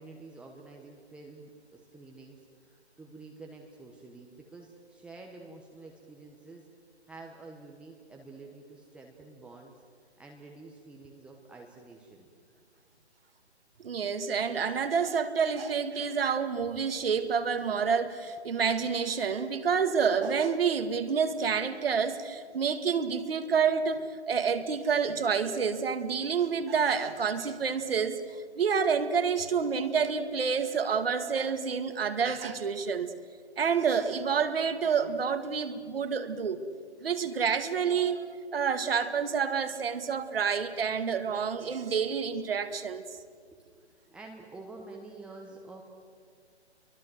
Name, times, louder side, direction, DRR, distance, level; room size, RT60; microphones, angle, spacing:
voice 1, 0.0-6.6 7.1-9.7 10.2-12.3 43.6-45.8, right 3 dB, 5° right, 0 dB, 1.1 m, -49 dB
voice 2, 13.8-33.1 33.6-36.6 37.0-43.0, right 6 dB, 55° right, 9 dB, 2.1 m, -28 dB
30.0 x 23.5 x 7.8 m, 2.1 s
figure-of-eight pair, 140°, 34 cm